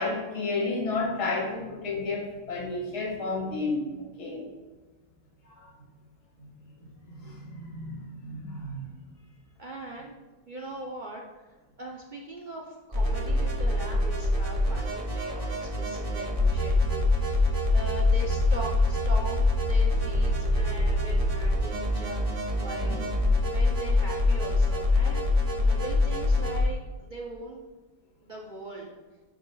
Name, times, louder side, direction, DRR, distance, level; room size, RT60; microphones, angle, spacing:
voice 1, 0.0-3.9 4.2-4.5 5.4-5.7 6.4-6.5 6.8-8.9 22.8-23.0, left 3 dB, 90° left, -3 dB, 1.9 m, -32 dB
voice 2, 9.6-10.1 10.5-17.5 17.7-23.1 23.5-27.7 28.2-29.0, right 1 dB, 75° right, -2 dB, 0.4 m, -41 dB
sound 1, 12.9-26.6, left 2 dB, 30° right, 0.8 m, -25 dB
10.0 x 4.7 x 2.3 m, 1.3 s
omnidirectional pair, 1.7 m